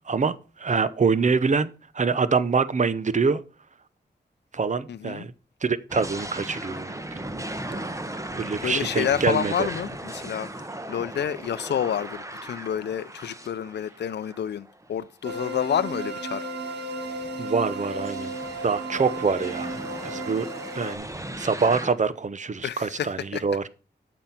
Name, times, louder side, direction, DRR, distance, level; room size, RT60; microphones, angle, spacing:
voice 1, 0.1-1.7 1.9-3.4 4.5-5.3 5.6-7.2 7.7-7.9 8.3-9.7 17.4-18.3 18.6-20.5 20.7-21.1 21.4-23.6, right 5 dB, 45° right, 0.8 m, -25 dB
voice 2, 4.9-5.3 8.6-10.5 10.9-16.5 22.6-23.4, left 9 dB, 75° left, 0.5 m, -29 dB
sound 1, 5.9-15.0 15.5-15.6 17.0-21.9, right 1 dB, 15° right, 1.1 m, -37 dB
sound 2, 15.2-21.0, right 1 dB, 75° right, 1.8 m, -34 dB
8.8 x 6.2 x 5.6 m
cardioid pair, 65°, 18 cm